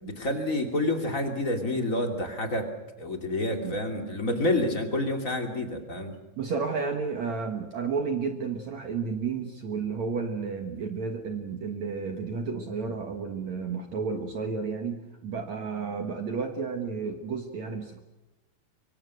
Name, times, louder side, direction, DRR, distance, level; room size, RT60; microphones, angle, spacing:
voice 1, 0.0-2.7 3.0-6.1, left 1 dB, 25° left, 5 dB, 2.1 m, -28 dB
voice 2, 6.4-18.0, right 5 dB, 60° right, 5 dB, 2.0 m, -32 dB
24.5 x 24.0 x 6.3 m, 1.1 s
omnidirectional pair, 5.1 m